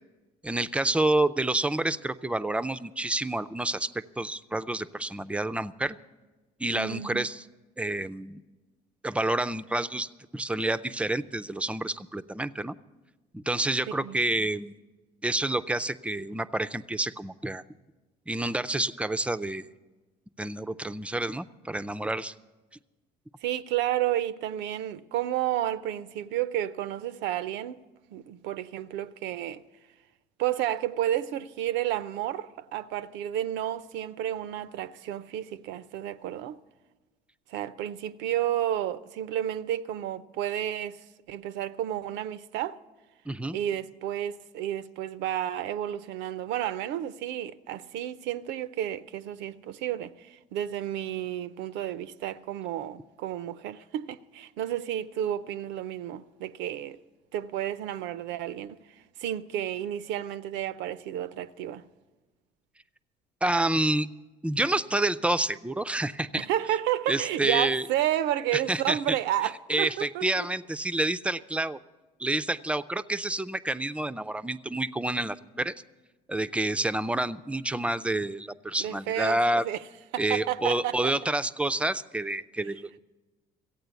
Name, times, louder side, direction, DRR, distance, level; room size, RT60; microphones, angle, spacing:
voice 1, 0.4-6.0 6.6-7.4 7.8-8.4 9.0-12.8 13.3-14.8 15.2-17.6 18.3-19.7 20.4-22.3 43.3-43.6 63.4-64.1 64.4-66.5 67.1-67.8 68.5-69.2 69.7-71.8 72.2-75.7 76.3-79.6 80.2-83.0, right 2 dB, 5° right, 0.4 m, -28 dB
voice 2, 6.7-7.3 13.9-14.2 23.4-27.8 28.1-29.6 30.4-36.6 37.5-42.8 43.5-57.0 57.3-58.8 59.2-61.8 66.3-70.5 78.8-79.4 79.6-79.8 80.1-81.1, right 12 dB, 75° right, 0.5 m, -31 dB
15.0 x 8.8 x 8.1 m
supercardioid pair, 90°, 18 cm